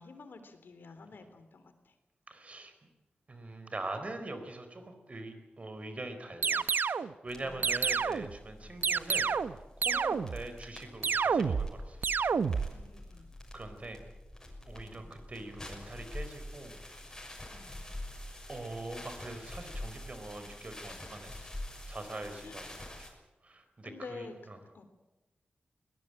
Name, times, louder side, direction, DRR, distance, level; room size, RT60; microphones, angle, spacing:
voice 1, 0.0-1.9 6.4-6.6 7.4-7.6 8.6-8.9 12.7-13.3 14.9-15.1 17.5-17.8 22.4-22.6 23.8-24.8, left 4 dB, 75° left, 9 dB, 3.5 m, -50 dB
voice 2, 2.3-2.7 3.3-6.6 7.0-9.3 9.8-12.1 13.5-14.0 14.7-16.7 18.5-21.5 21.9-23.1 23.4-24.6, right 2 dB, 40° right, 8 dB, 4.2 m, -43 dB
sound 1, 6.4-7.1 7.6-8.3 8.8-9.6 9.8-10.5 11.0-11.7 12.0-12.7, right 5 dB, 70° right, 0.8 m, -29 dB
sound 2, 7.3-23.1, left 1 dB, 15° left, 6.5 m, -46 dB
22.0 x 19.0 x 8.9 m, 1.1 s
wide cardioid pair, 95°, 3 cm